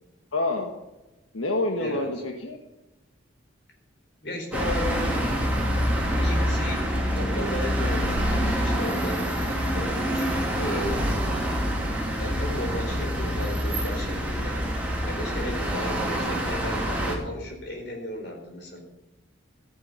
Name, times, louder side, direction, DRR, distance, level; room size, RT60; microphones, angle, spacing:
voice 1, 0.3-0.7 1.3-2.6, left 2 dB, 85° left, 3 dB, 1.5 m, -27 dB
voice 2, 1.8-2.1 4.2-5.2 6.2-11.1 12.2-18.8, left 1 dB, 55° left, 2 dB, 4.4 m, -35 dB
sound 1, 4.5-17.2, equal, 5° right, 2.7 m, -26 dB
14.0 x 10.0 x 6.9 m, 1.0 s
head